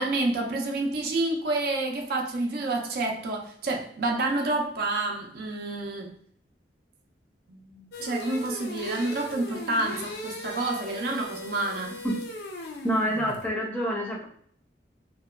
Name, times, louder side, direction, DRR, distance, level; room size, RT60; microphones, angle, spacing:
voice 1, 0.0-6.1 7.5-12.0, right 2 dB, 55° right, 0.4 m, -29 dB
sound 1, 7.9-13.5, left 1 dB, 60° left, 0.4 m, -39 dB
voice 2, 12.8-14.2, equal, 10° left, 0.5 m, -27 dB
2.8 x 2.2 x 2.2 m
head